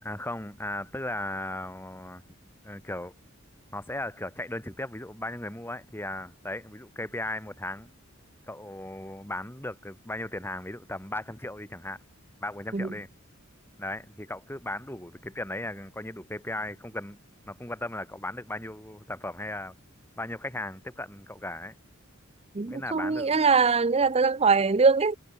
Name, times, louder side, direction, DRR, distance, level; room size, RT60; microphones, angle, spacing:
voice 1, 0.0-2.2 2.6-3.1 3.7-7.9 8.5-12.0 12.4-13.1 13.8-17.2 17.5-19.7 20.2-21.7 22.7-23.4, left 1 dB, 10° left, 3.4 m, -36 dB
voice 2, 22.5-25.2, right 4 dB, 30° right, 0.6 m, -22 dB
head